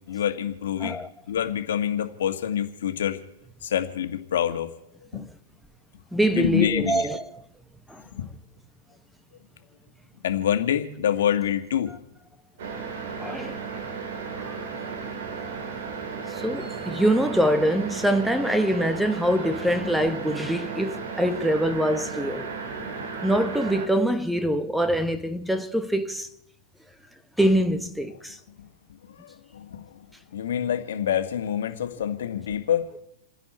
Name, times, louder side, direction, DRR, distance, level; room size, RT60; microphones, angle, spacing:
voice 1, 0.1-1.0 1.3-3.2 3.6-4.7 5.1-5.2 6.3-7.1 8.1-8.3 10.2-11.9 22.8-23.0 29.0-32.9, left 9 dB, 80° left, 1.8 m, -27 dB
voice 2, 6.1-7.4 7.9-8.0 13.2-13.6 14.4-14.6 16.3-22.5 23.2-26.3 27.4-28.4, right 1 dB, ahead, 0.8 m, -24 dB
sound 1, 12.6-23.9, right 5 dB, 70° right, 3.9 m, -34 dB
29.0 x 10.0 x 4.4 m
hypercardioid pair, 140°, 0 cm